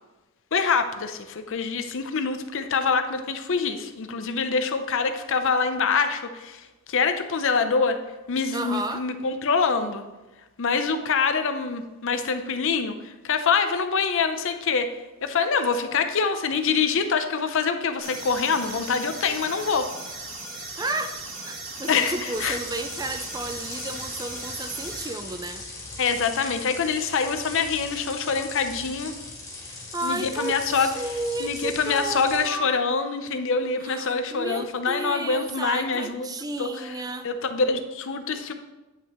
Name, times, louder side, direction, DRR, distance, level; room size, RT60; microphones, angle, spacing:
voice 1, 0.5-8.0 8.3-10.0 10.6-14.9 15.2-19.9 21.9-22.6 26.0-29.1 30.0-38.5, left 5 dB, 60° left, 8 dB, 0.6 m, -25 dB
voice 2, 8.5-9.0 20.8-21.1 21.5-25.7 29.7-32.7 33.8-37.3, right 2 dB, 15° right, 7 dB, 0.4 m, -32 dB
sound 1, 18.0-25.1, right 2 dB, 60° right, 2.7 m, -38 dB
sound 2, 22.3-32.4, left 2 dB, 15° left, 1.5 m, -39 dB
9.2 x 5.8 x 3.0 m, 1.1 s
head